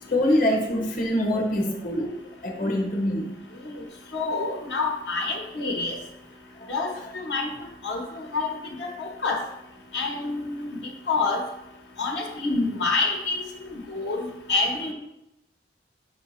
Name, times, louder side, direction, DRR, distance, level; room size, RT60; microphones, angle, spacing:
voice 1, 0.1-3.4 6.6-6.7, left 1 dB, 50° left, 1 dB, 1.0 m, -25 dB
voice 2, 4.1-6.0 6.7-7.5 7.8-8.5 8.8-9.4 9.9-10.7 11.1-11.4 12.0-13.4 13.7-14.9, left 3 dB, 80° left, 1 dB, 1.0 m, -27 dB
6.4 x 4.8 x 3.0 m, 0.87 s
head